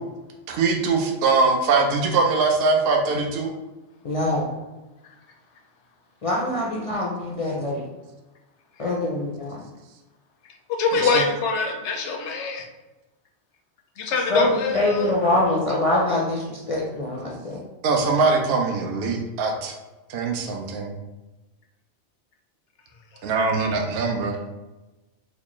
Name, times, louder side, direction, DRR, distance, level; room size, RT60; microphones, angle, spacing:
voice 1, 0.5-3.5 17.8-19.7 20.1-20.9 23.2-24.4, right 4 dB, 65° right, 2 dB, 0.7 m, -22 dB
voice 2, 4.0-4.5 6.2-7.8 8.8-9.6 14.3-14.5 14.7-17.6, left 1 dB, 50° left, -3 dB, 0.4 m, -24 dB
voice 3, 10.8-12.7 14.0-15.1, left 4 dB, 90° left, 2 dB, 0.9 m, -24 dB
4.3 x 2.3 x 3.0 m, 1.1 s
omnidirectional pair, 1.2 m